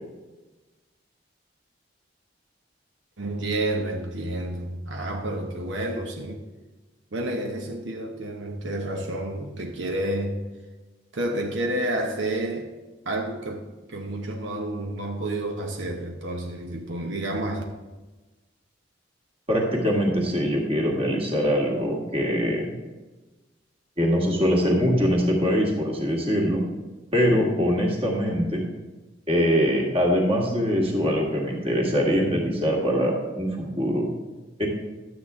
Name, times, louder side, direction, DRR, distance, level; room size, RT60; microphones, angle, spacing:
voice 1, 3.2-6.4 7.1-10.5 11.1-12.7 13.1-17.6, right 1 dB, 80° right, 1.0 m, -30 dB
voice 2, 19.5-22.7 24.0-26.6 27.1-28.6 29.3-34.1 34.6-34.7, equal, 30° right, 1.9 m, -23 dB
12.0 x 8.0 x 3.7 m
head